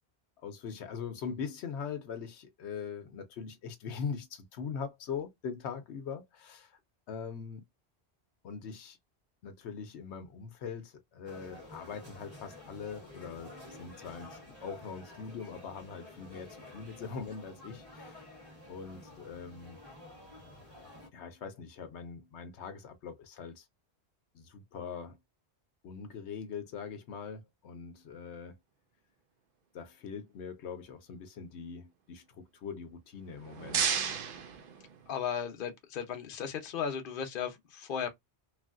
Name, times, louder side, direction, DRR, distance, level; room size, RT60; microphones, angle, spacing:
voice 1, 0.4-6.8 7.1-7.6 8.4-9.0 9.4-13.5 13.8-18.2 18.7-19.8 21.1-23.7 24.3-25.2 25.8-28.6 29.7-34.0, left 6 dB, 85° left, 0.9 m, -42 dB
sound 1, 11.3-21.1, left 2 dB, 20° right, 1.7 m, -51 dB
sound 2, 33.2-35.4, right 7 dB, 60° right, 0.7 m, -34 dB
voice 2, 35.1-38.1, left 7 dB, 55° left, 0.8 m, -35 dB
3.2 x 2.5 x 2.4 m
omnidirectional pair, 1.1 m